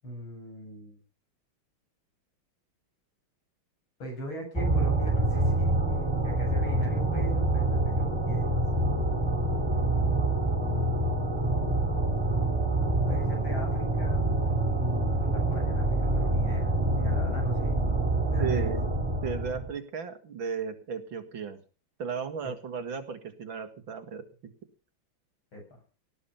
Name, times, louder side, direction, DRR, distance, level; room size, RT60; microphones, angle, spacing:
voice 1, 0.0-1.0 4.0-6.0 6.2-8.6 9.6-11.2 13.1-17.8 18.3-18.7 22.4-22.5 25.5-25.8, equal, 80° left, 1 dB, 8.7 m, -41 dB
sound 1, 4.5-19.7, right 2 dB, 10° right, 2.9 m, -26 dB
voice 2, 18.4-18.8 19.2-21.6 22.0-24.2, right 6 dB, 70° right, 7 dB, 2.7 m, -35 dB
18.5 x 10.5 x 5.8 m, 0.37 s
omnidirectional pair, 2.2 m